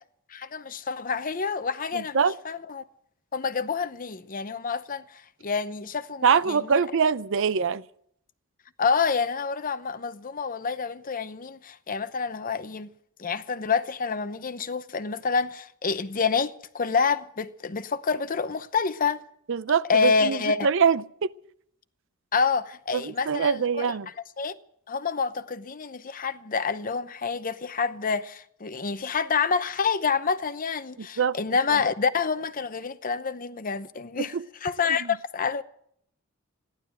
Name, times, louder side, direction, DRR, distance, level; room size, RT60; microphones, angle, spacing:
voice 1, 0.3-2.2 2.4-2.8 3.3-6.7 8.8-12.9 13.2-19.2 19.9-20.7 22.3-23.9 24.4-24.6 24.9-34.3 34.6-35.6, left 5 dB, 40° left, 0.8 m, -28 dB
voice 2, 1.9-2.4 6.2-7.8 19.5-21.3 22.9-24.1 31.0-31.4 31.7-31.8 34.2-34.5 34.9-35.2, right 6 dB, 65° right, 0.5 m, -24 dB
15.0 x 11.5 x 7.8 m
head